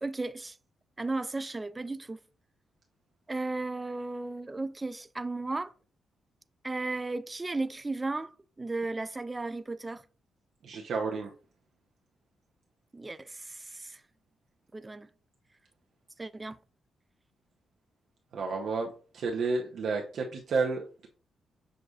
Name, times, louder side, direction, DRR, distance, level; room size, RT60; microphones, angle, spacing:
voice 1, 0.0-0.6 1.0-2.2 3.3-5.7 6.6-10.0 12.9-14.0 14.7-15.1 16.2-16.6, right 2 dB, 25° right, 0.3 m, -35 dB
voice 2, 10.6-11.3 18.3-21.1, right 4 dB, 70° right, 0.6 m, -31 dB
6.3 x 2.6 x 2.3 m
supercardioid pair, 60°, 0 cm